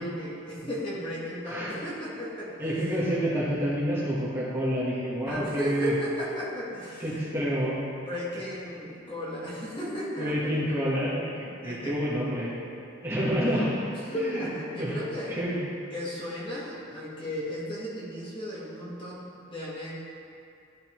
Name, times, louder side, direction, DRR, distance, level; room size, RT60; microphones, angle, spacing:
voice 1, 0.0-2.7 5.3-7.0 8.0-10.6 11.6-12.0 13.4-15.3 15.9-19.9, equal, 25° left, -7 dB, 1.4 m, -35 dB
voice 2, 2.6-5.9 7.0-7.8 10.2-12.6 13.0-13.8 14.1-14.5 14.8-15.0 15.3-15.6, equal, 10° right, -8 dB, 1.2 m, -28 dB
11.5 x 5.2 x 3.0 m, 2.5 s
head